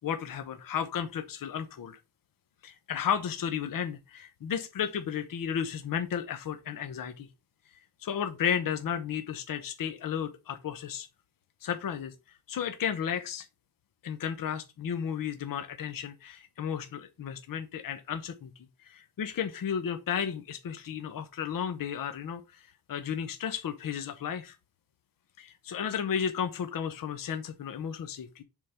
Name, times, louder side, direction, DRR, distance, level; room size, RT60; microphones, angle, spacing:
voice 1, 0.0-2.0 2.6-7.3 8.0-11.1 11.6-12.1 12.5-13.4 14.0-24.6 25.4-28.4, left 8 dB, 55° left, 1.0 m, -33 dB
7.3 x 3.8 x 5.6 m
cardioid pair, 120°, 40 cm